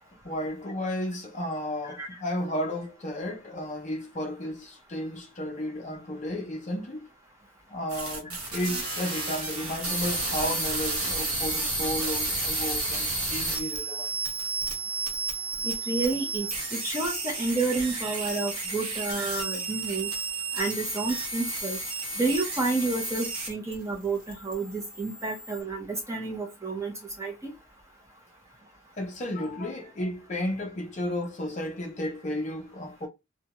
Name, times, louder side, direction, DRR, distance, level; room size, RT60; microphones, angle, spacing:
voice 1, 0.2-7.1 7.7-14.2 29.0-33.1, left 1 dB, 30° left, 0.5 m, -33 dB
sound 1, 7.9-23.7 24.0-25.6, right 2 dB, 80° right, 0.9 m, -32 dB
voice 2, 15.6-20.1 20.5-21.8 22.2-26.9 27.2-27.5, right 3 dB, 15° right, 0.6 m, -30 dB
2.5 x 2.1 x 2.8 m
head